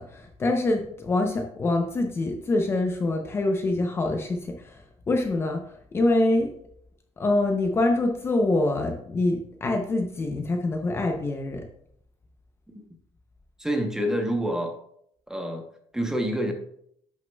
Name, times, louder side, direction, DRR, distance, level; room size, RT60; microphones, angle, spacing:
voice 1, 0.0-4.8 5.1-5.7 5.9-6.5 7.2-11.6, left 2 dB, 20° left, 3 dB, 0.6 m, -25 dB
voice 2, 13.6-14.7 15.3-15.7 15.9-16.5, equal, 5° right, 4 dB, 0.8 m, -27 dB
10.5 x 6.3 x 2.3 m, 0.69 s
cardioid pair, 165°, 11 cm